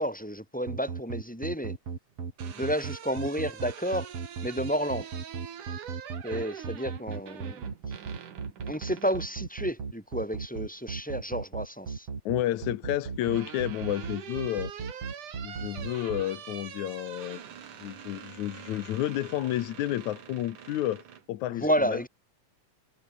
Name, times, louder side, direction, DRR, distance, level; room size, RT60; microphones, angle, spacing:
voice 1, 0.0-1.7 2.6-4.1 4.4-5.1 6.2-7.7 8.6-12.1 21.6-22.1, equal, ahead, 4.1 m, -31 dB
sound 1, 0.7-16.2, right 5 dB, 40° right, 4.2 m, -35 dB
sound 2, 2.1-9.3 10.8-11.5 12.7-21.2, right 8 dB, 65° right, 3.7 m, -44 dB
voice 2, 12.3-14.7 15.4-17.4 17.8-22.1, left 13 dB, 65° left, 2.1 m, -31 dB
omnidirectional pair, 4.1 m